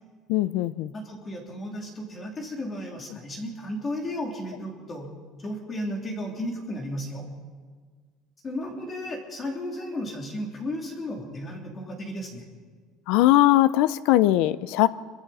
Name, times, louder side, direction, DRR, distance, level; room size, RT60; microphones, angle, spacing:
voice 1, 0.3-0.9 13.1-14.9, left 15 dB, 70° left, 15 dB, 0.6 m, -20 dB
voice 2, 0.9-5.1 5.4-7.3 8.4-12.4, left 1 dB, 20° left, 0 dB, 3.1 m, -34 dB
26.5 x 23.0 x 4.2 m, 1.5 s
cardioid pair, 175°, 0 cm